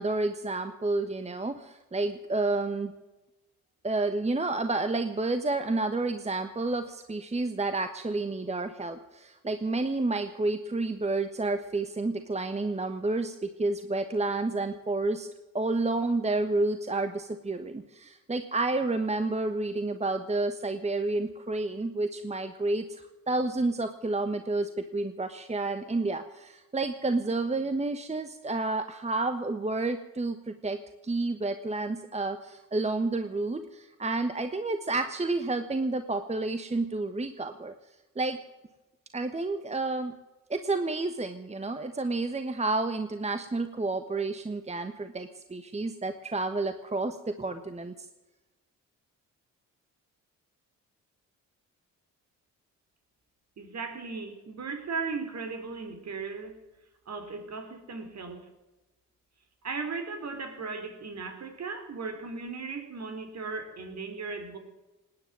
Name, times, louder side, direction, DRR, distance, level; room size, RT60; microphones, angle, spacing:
voice 1, 0.0-2.9 3.8-15.3 15.5-37.7 38.1-38.4 39.1-40.1 40.5-47.9, right 2 dB, 20° right, 9 dB, 1.3 m, -30 dB
voice 2, 53.6-56.6 57.1-58.5 59.6-64.6, right 4 dB, 50° right, 7 dB, 3.9 m, -37 dB
19.0 x 9.9 x 7.6 m, 1.0 s
cardioid pair, 75°, 33 cm